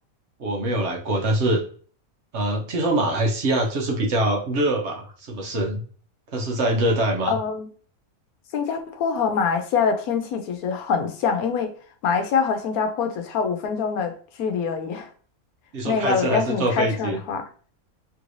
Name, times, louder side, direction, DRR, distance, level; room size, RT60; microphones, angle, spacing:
voice 1, 0.4-1.6 2.3-5.8 6.3-7.4 15.7-17.2, right 1 dB, 55° right, 1.0 m, -24 dB
voice 2, 7.3-7.7 8.5-11.7 12.0-15.1 15.8-17.4, left 6 dB, 90° left, 1.1 m, -24 dB
3.1 x 3.1 x 2.5 m
omnidirectional pair, 1.5 m